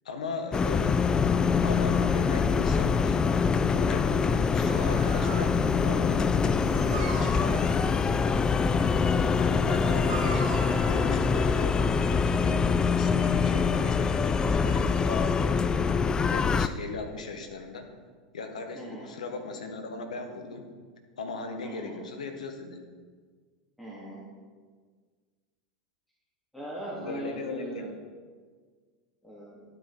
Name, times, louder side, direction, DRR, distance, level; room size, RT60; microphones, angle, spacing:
voice 1, 0.0-1.0 1.6-3.2 3.7-7.6 8.8-8.9 9.4-15.7 16.3-17.9 18.3-20.7 21.2-22.8 27.0-27.9, left 3 dB, 75° left, 5 dB, 1.4 m, -38 dB
sound 1, 0.5-16.7, left 5 dB, 20° left, 0.4 m, -24 dB
voice 2, 4.2-4.6 8.6-9.0 18.7-19.1 21.6-22.0 23.8-24.2 26.5-27.9 29.2-29.6, right 1 dB, ahead, -7 dB, 2.8 m, -40 dB
Dog, 4.4-12.1, right 3 dB, 70° right, 1.7 m, -42 dB
12.0 x 8.9 x 4.3 m, 1.5 s
figure-of-eight pair, 85°, 4 cm